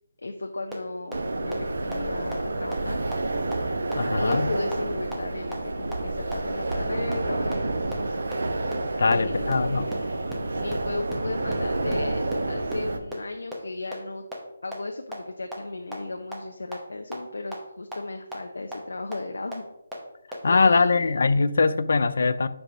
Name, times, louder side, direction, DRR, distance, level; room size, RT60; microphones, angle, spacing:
voice 1, 0.2-3.0 4.2-8.2 9.0-14.2 14.6-19.6 20.4-21.4, left 2 dB, 85° left, 4 dB, 0.7 m, -35 dB
sound 1, 0.7-0.8 1.1-1.2 1.5-1.6 1.9-2.0 2.3-2.4 2.7-2.8 3.1-3.2 3.5-3.6 3.9-4.0 4.3-4.4 4.7-4.8 5.1-5.2 5.5-5.6 5.9-6.0 6.3-6.4 6.7-6.8 7.1-7.2 7.5-7.6 7.9-8.0 8.3-8.4 8.7-8.8 9.1-9.2 9.5-9.6 9.9-10.0 10.3-10.4 10.7-10.8 11.1-11.2 11.5-11.6 11.9-12.0 12.3-12.4 12.7-12.8 13.1-13.2 13.5-13.6 13.9-14.0 14.3-14.4 14.7-14.8 15.1-15.2 15.5-15.6 15.9-16.0 16.3-16.4 16.7-16.8 17.1-17.2 17.5-17.6 17.9-18.0 18.3-18.4 18.7-18.8 19.1-19.2 19.5-19.6 19.9-20.0 20.3-20.4, equal, 5° right, 0.8 m, -34 dB
sound 2, 1.1-13.0, right 2 dB, 65° right, 0.8 m, -29 dB
voice 2, 3.9-4.5 9.0-9.9 20.4-22.5, left 4 dB, 55° left, 14 dB, 0.4 m, -22 dB
5.0 x 4.8 x 5.8 m, 0.90 s
hypercardioid pair, 175°, 0 cm